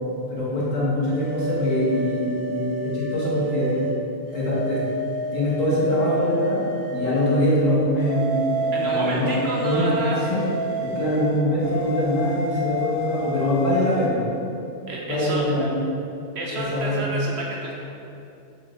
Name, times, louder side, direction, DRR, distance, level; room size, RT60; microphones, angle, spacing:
voice 1, 0.3-3.7 4.3-4.8 5.3-10.4 10.8-14.2 15.1-15.8 16.5-17.2, left 1 dB, 75° left, -8 dB, 1.5 m, -23 dB
sound 1, 1.1-3.9 4.3-7.6 8.0-14.1, equal, 85° right, 1.3 m, -29 dB
voice 2, 8.7-10.2 14.9-15.4 16.3-17.7, right 2 dB, 65° right, -3 dB, 0.8 m, -29 dB
6.5 x 2.4 x 3.1 m, 2.7 s
omnidirectional pair, 1.4 m